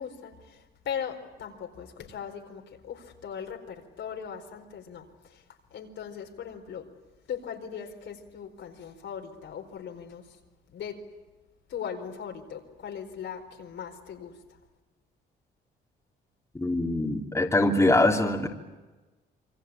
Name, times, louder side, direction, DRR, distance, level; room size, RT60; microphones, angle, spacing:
voice 1, 0.0-5.4 5.7-6.9 7.3-10.4 10.7-11.0 11.7-14.6, left 8 dB, 70° left, 2 dB, 4.6 m, -39 dB
voice 2, 16.5-18.5, left 2 dB, 15° left, 1 dB, 3.1 m, -23 dB
27.5 x 23.5 x 8.8 m, 1.1 s
cardioid pair, 90°, 20 cm